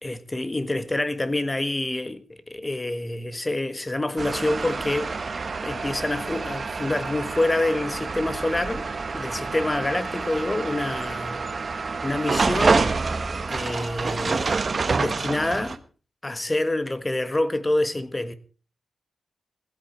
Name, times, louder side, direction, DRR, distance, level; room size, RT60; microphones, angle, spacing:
voice 1, 0.0-5.1 5.6-8.8 9.1-11.4 12.0-12.9 13.5-15.8 16.2-18.3, left 2 dB, 20° left, 1.5 m, -27 dB
sound 1, 4.2-15.8, right 4 dB, 40° right, 1.1 m, -27 dB
16.0 x 14.0 x 4.4 m
wide cardioid pair, 120°, 0 cm